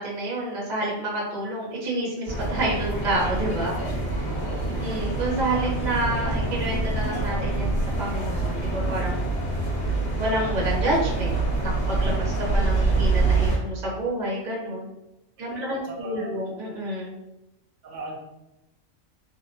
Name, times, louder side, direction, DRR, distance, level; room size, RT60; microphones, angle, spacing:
voice 1, 0.0-4.3 4.7-9.2 10.2-14.9 15.4-17.2, right 1 dB, 40° right, -5 dB, 0.8 m, -29 dB
sound 1, 2.3-13.6, right 3 dB, 50° left, 1.3 m, -26 dB
voice 2, 4.4-4.8 15.5-16.3 17.8-18.2, right 2 dB, 70° right, -1 dB, 1.0 m, -39 dB
2.8 x 2.1 x 2.6 m, 0.92 s
omnidirectional pair, 1.4 m